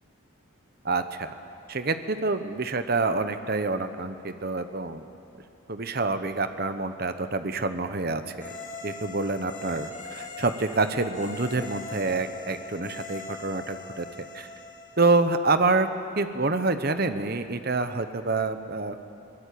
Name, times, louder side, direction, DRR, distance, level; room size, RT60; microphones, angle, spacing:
voice 1, 0.8-1.3 1.7-5.0 5.7-8.6 8.8-14.5 15.0-15.9 16.2-19.0, right 3 dB, 45° right, 9 dB, 1.0 m, -27 dB
sound 1, 8.4-15.1, left 3 dB, 35° left, 2.6 m, -41 dB
22.5 x 20.0 x 8.6 m, 2.6 s
head